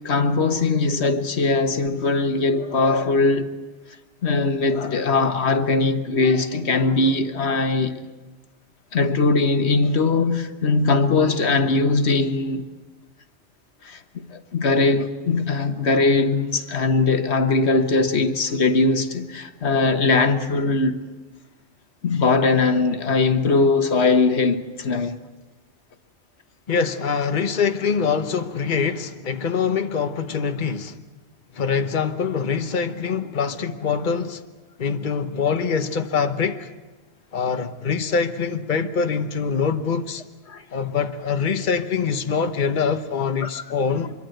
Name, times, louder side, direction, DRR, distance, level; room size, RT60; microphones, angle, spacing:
voice 1, 0.0-3.5 4.2-7.9 8.9-12.6 13.8-21.0 22.0-25.1 40.5-40.6 43.4-43.6, left 3 dB, 80° left, 1.5 m, -20 dB
voice 2, 26.7-31.0 31.5-34.4 34.8-36.7 37.3-40.2 40.7-44.1, left 6 dB, 50° left, 1.2 m, -24 dB
25.5 x 23.0 x 7.9 m
omnidirectional pair, 1.1 m